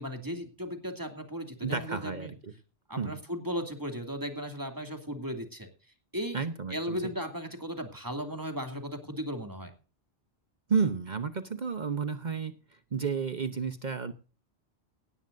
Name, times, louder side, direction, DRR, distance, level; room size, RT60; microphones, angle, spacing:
voice 1, 0.0-2.3 2.9-5.7 6.1-6.4 6.7-9.7, equal, 20° right, 5 dB, 2.6 m, -36 dB
voice 2, 1.6-2.5 3.0-3.2 6.3-7.0 10.7-12.5 12.9-14.1, right 5 dB, 45° right, 10 dB, 1.0 m, -31 dB
18.0 x 15.0 x 2.6 m, 0.37 s
omnidirectional pair, 1.1 m